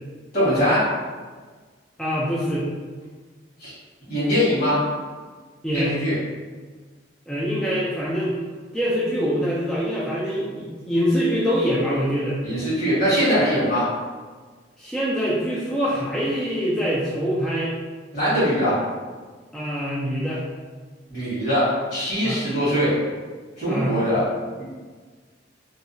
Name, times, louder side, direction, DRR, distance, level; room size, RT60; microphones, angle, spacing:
voice 1, 0.3-0.9 3.6-3.7 4.1-4.8 5.7-6.1 12.4-13.9 18.1-18.8 21.1-23.0 23.6-24.2, equal, 55° left, -10 dB, 1.4 m, -21 dB
voice 2, 2.0-2.7 5.6-6.0 7.3-8.4 8.7-12.4 14.8-17.7 19.5-20.4 22.2-22.4 23.7-23.9, equal, 5° left, -8 dB, 0.3 m, -24 dB
2.7 x 2.1 x 2.6 m, 1.4 s
head